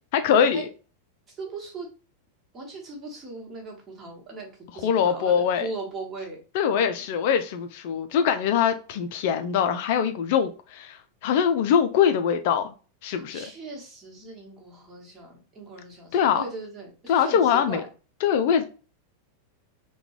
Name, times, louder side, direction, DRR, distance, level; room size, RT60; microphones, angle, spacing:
voice 1, 0.1-0.7 4.8-5.7 6.5-12.7 13.0-13.5 16.1-16.4 17.1-17.8 18.2-18.7, left 8 dB, 50° left, 0.3 m, -23 dB
voice 2, 1.4-1.9 2.5-4.5 4.7-6.4 13.1-17.9, right 3 dB, 20° right, 1.3 m, -39 dB
3.6 x 2.2 x 3.0 m
figure-of-eight pair, 90°, 0 cm